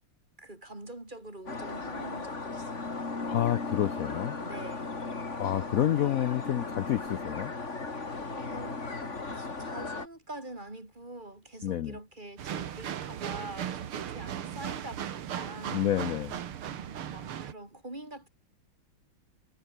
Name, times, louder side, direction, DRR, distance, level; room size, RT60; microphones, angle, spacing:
voice 1, 0.4-2.9 4.4-5.0 8.3-9.0 9.2-15.8 16.7-18.3, right 1 dB, 20° right, 4.0 m, -45 dB
sound 1, 1.5-10.1, left 3 dB, 35° left, 3.1 m, -36 dB
voice 2, 3.2-4.4 5.4-7.5 11.6-12.0 15.7-16.4, left 11 dB, 70° left, 0.8 m, -29 dB
sound 2, 12.4-17.5, right 9 dB, 85° right, 2.3 m, -37 dB
omnidirectional pair, 2.3 m